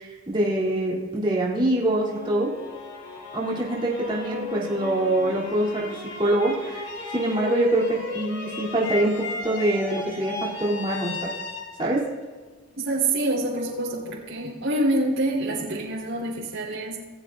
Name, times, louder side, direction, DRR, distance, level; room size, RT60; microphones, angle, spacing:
voice 1, 0.0-2.5 3.3-11.3 11.8-12.0, right 1 dB, 25° right, -5 dB, 3.0 m, -25 dB
sound 1, 1.9-12.9, left 3 dB, 75° left, 4.0 m, -36 dB
voice 2, 12.8-17.0, right 2 dB, 75° right, -6 dB, 4.0 m, -26 dB
28.0 x 14.5 x 2.5 m, 1.4 s
head